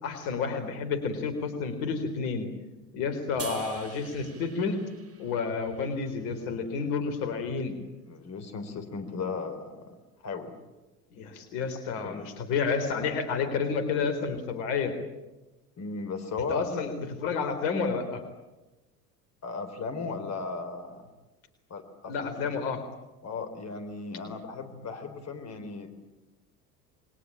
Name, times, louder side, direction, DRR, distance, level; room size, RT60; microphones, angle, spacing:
voice 1, 0.0-2.5 2.9-4.8 5.2-7.8 11.1-14.9 16.5-18.2 22.1-22.8, left 5 dB, 60° left, 9 dB, 4.0 m, -30 dB
sound 1, 3.4-6.7, right 5 dB, 30° right, 2.8 m, -46 dB
voice 2, 8.1-10.0 10.2-10.5 12.0-12.3 15.8-16.6 19.4-21.1 21.7-22.5 23.2-25.9, left 4 dB, 35° left, 7 dB, 4.2 m, -36 dB
28.5 x 22.0 x 8.8 m, 1.1 s
figure-of-eight pair, 70°, 47 cm